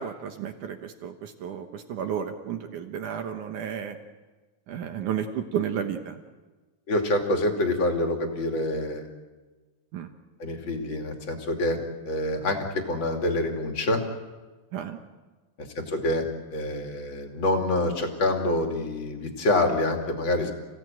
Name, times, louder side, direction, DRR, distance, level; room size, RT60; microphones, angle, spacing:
voice 1, 0.0-4.0 4.7-6.2 9.9-10.1 14.7-15.0, right 8 dB, 75° right, 6 dB, 1.8 m, -32 dB
voice 2, 6.9-9.1 10.4-11.8 12.1-14.0 15.7-20.5, left 1 dB, 35° left, 3 dB, 2.6 m, -26 dB
30.0 x 16.5 x 9.1 m, 1.3 s
omnidirectional pair, 5.3 m